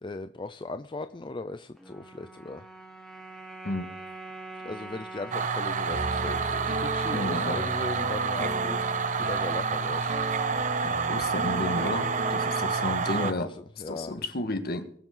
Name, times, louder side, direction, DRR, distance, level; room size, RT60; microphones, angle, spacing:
voice 1, 0.0-2.6 4.6-10.2 12.7-14.1, left 2 dB, 25° left, 0.5 m, -38 dB
sound 1, 1.8-8.2, right 2 dB, ahead, 1.7 m, -45 dB
sound 2, 5.3-13.3, right 5 dB, 40° right, 0.8 m, -28 dB
Piano, 5.9-12.7, right 1 dB, 60° right, 2.2 m, -36 dB
voice 2, 7.1-7.6 10.8-13.5 13.8-14.9, left 2 dB, 55° left, 1.6 m, -32 dB
21.5 x 7.4 x 3.9 m
head